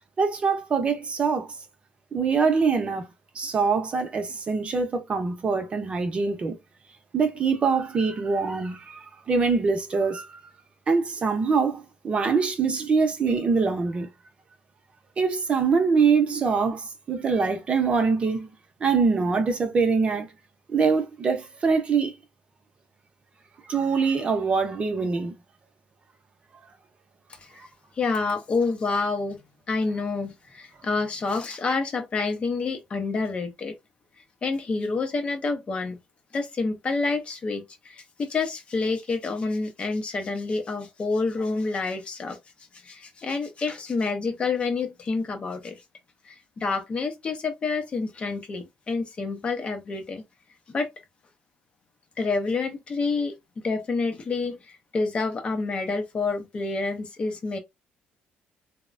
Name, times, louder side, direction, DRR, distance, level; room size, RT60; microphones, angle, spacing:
voice 1, 0.2-1.5 2.1-3.1 3.3-6.6 7.1-10.3 10.9-14.1 15.2-18.5 18.8-20.3 20.7-22.2 23.7-25.3, right 5 dB, 35° right, 0.7 m, -24 dB
voice 2, 27.9-29.4 29.7-33.8 34.4-36.0 36.3-42.4 42.8-45.8 46.2-50.2 50.7-50.9 52.2-53.3 53.6-57.6, left 4 dB, 35° left, 0.6 m, -28 dB
2.9 x 2.1 x 2.5 m
cardioid pair, 115°, 3 cm